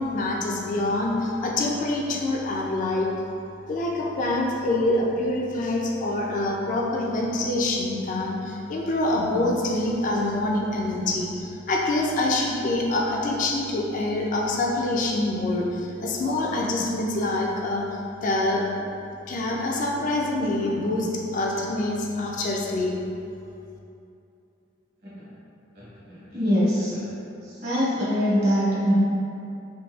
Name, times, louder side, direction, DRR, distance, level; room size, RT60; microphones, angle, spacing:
voice 1, 0.0-3.1 3.7-17.8 18.2-18.8 19.3-23.0, left 2 dB, 40° left, -2 dB, 0.3 m, -25 dB
voice 2, 25.7-27.1 27.4-28.9, equal, 55° right, -8 dB, 1.0 m, -24 dB
3.8 x 2.6 x 2.3 m, 2.7 s
head